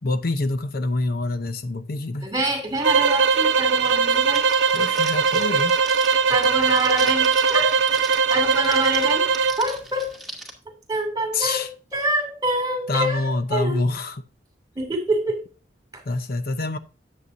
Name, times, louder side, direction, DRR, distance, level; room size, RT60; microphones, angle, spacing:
voice 1, 0.0-2.3 4.7-5.8 11.3-11.7 12.9-14.2 16.1-16.8, left 2 dB, 55° left, 0.7 m, -26 dB
voice 2, 2.2-4.4 6.3-7.8 8.3-9.3 9.6-10.2 10.9-13.8 14.8-15.4, right 1 dB, 20° right, 2.6 m, -26 dB
sound 1, 2.8-9.6, right 5 dB, 75° right, 0.7 m, -20 dB
Crackle, 4.3-10.5, right 1 dB, ahead, 2.2 m, -39 dB
9.7 x 7.9 x 2.6 m
head